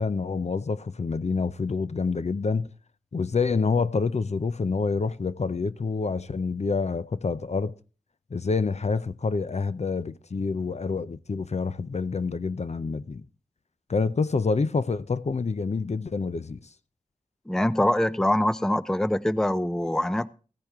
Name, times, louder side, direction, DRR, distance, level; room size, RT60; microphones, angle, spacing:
voice 1, 0.0-2.7 3.1-7.7 8.3-13.2 13.9-16.6, left 4 dB, 55° left, 0.6 m, -27 dB
voice 2, 17.5-20.3, left 1 dB, 5° left, 0.5 m, -24 dB
16.0 x 10.0 x 3.6 m
wide cardioid pair, 60°, 13 cm